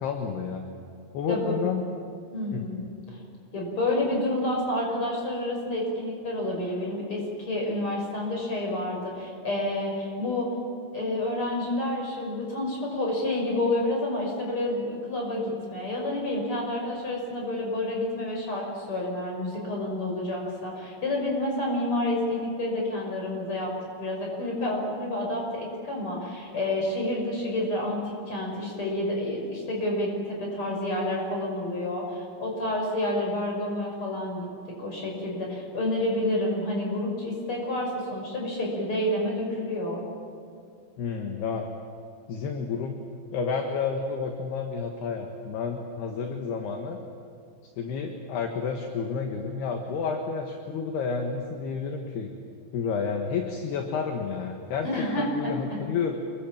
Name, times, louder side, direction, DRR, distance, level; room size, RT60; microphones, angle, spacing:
voice 1, 0.0-0.7 1.1-1.8 2.5-2.6 41.0-41.7 42.3-43.0 43.3-47.0 47.8-52.3 52.7-54.9 55.2-56.1, left 5 dB, 65° left, 3 dB, 3.2 m, -30 dB
voice 2, 2.3-2.8 3.5-10.5 10.9-23.7 24.0-34.5 34.8-40.0 54.8-55.8, left 1 dB, 25° left, -1 dB, 6.3 m, -29 dB
27.5 x 23.0 x 7.5 m, 2.4 s
omnidirectional pair, 5.8 m